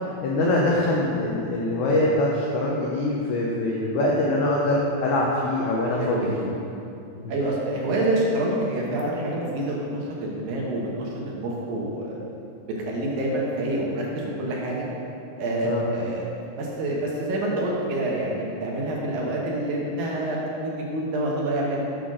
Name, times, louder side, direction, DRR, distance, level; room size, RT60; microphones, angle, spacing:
voice 1, 0.2-6.5 7.1-7.2 15.6-15.8, left 1 dB, 80° left, -4 dB, 1.7 m, -23 dB
voice 2, 6.0-6.3 7.3-12.2 12.8-14.9 15.4-16.3 16.5-21.8, right 1 dB, 75° right, -3 dB, 2.7 m, -27 dB
7.9 x 4.1 x 6.2 m, 2.7 s
omnidirectional pair, 4.3 m